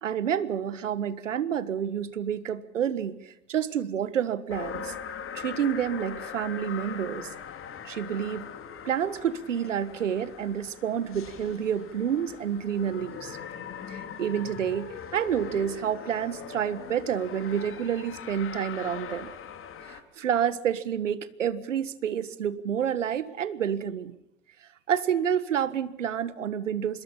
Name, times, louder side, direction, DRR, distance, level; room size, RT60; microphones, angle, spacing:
voice 1, 0.0-5.0 5.3-7.3 7.8-8.5 8.8-13.4 13.9-19.3 19.9-24.1 24.9-27.0, right 8 dB, 80° right, 16 dB, 1.5 m, -29 dB
sound 1, 4.5-20.0, left 7 dB, 35° left, 3.4 m, -41 dB
26.0 x 22.0 x 5.6 m, 0.79 s
hypercardioid pair, 80°, 37 cm